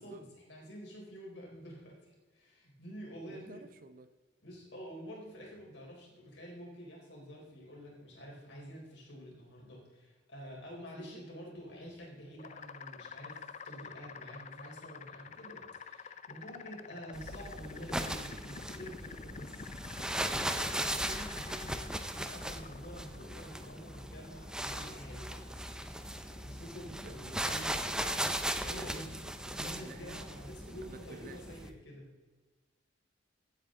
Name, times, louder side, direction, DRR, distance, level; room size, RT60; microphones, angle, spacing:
voice 1, 0.0-3.6 4.4-19.7 20.0-27.7 28.6-29.2 29.6-32.1, equal, 70° left, -2 dB, 4.1 m, -48 dB
voice 2, 3.3-4.1 10.9-11.2 27.0-30.2 30.6-31.6, right 3 dB, 50° right, 11 dB, 0.7 m, -52 dB
sound 1, 12.4-31.1, left 5 dB, 40° left, 0.5 m, -49 dB
sound 2, 17.1-31.7, right 1 dB, 5° right, 0.6 m, -38 dB
15.5 x 8.5 x 3.8 m, 1.3 s
head